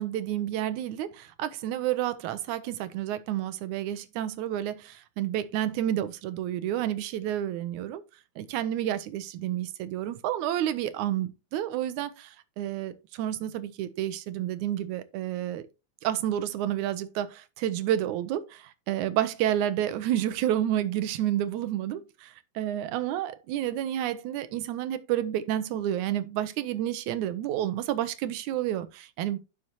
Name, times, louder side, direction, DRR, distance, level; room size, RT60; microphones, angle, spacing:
voice 1, 0.0-8.0 8.4-15.7 16.0-29.4, right 12 dB, 80° right, 2.2 m, -30 dB
11.5 x 6.4 x 2.8 m
omnidirectional pair, 3.5 m